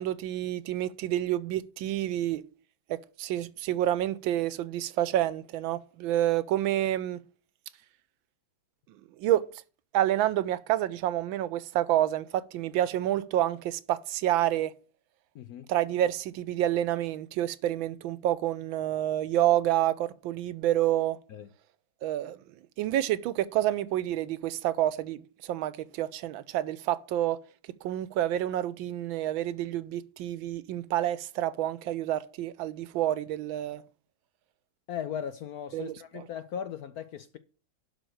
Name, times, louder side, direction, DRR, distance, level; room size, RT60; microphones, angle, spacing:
voice 1, 0.0-2.4 2.9-7.2 9.2-9.4 9.9-14.7 15.7-21.2 22.0-22.4 22.8-27.4 27.8-33.8 35.7-36.3, right 13 dB, 85° right, 1.4 m, -28 dB
voice 2, 15.3-15.7 21.3-21.5 34.9-37.4, left 8 dB, 70° left, 0.9 m, -38 dB
11.5 x 4.5 x 6.4 m
omnidirectional pair, 2.1 m